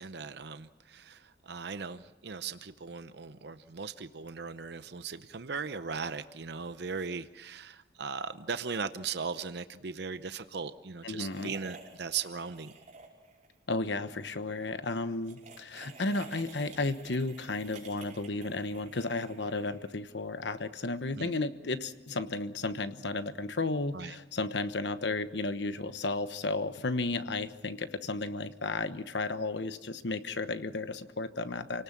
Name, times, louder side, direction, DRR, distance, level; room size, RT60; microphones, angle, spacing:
voice 1, 0.0-12.7 21.1-21.3 23.9-24.2, right 5 dB, 65° right, 11 dB, 0.7 m, -38 dB
voice 2, 11.0-11.5 13.7-31.8, left 3 dB, 70° left, 11 dB, 1.1 m, -33 dB
sound 1, 11.3-13.5 13.8-14.0 15.1-20.1, right 4 dB, 40° right, 5.5 m, -51 dB
28.5 x 18.5 x 7.3 m, 1.0 s
head